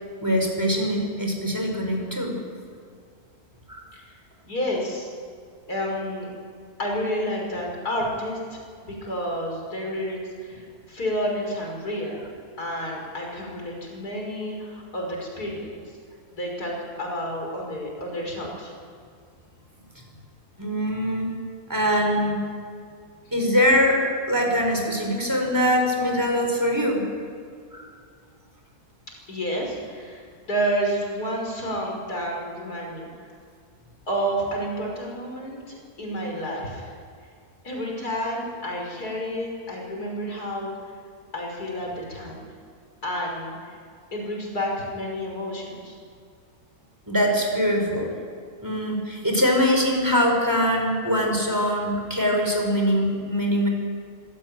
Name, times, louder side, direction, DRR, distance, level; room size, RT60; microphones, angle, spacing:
voice 1, 0.2-2.4 3.7-3.8 20.6-21.3 21.7-22.5 23.3-24.0 24.3-27.0 27.7-27.9 47.1-48.1 48.6-53.7, equal, 10° right, 1 dB, 5.1 m, -23 dB
voice 2, 4.4-5.1 5.7-6.3 6.8-12.3 12.6-15.8 16.3-18.7 29.3-33.1 34.1-36.9 37.6-40.7 41.3-42.5 43.0-43.6 44.1-46.0, equal, 90° left, 0 dB, 6.4 m, -30 dB
25.5 x 17.5 x 9.2 m, 2.1 s
omnidirectional pair, 1.6 m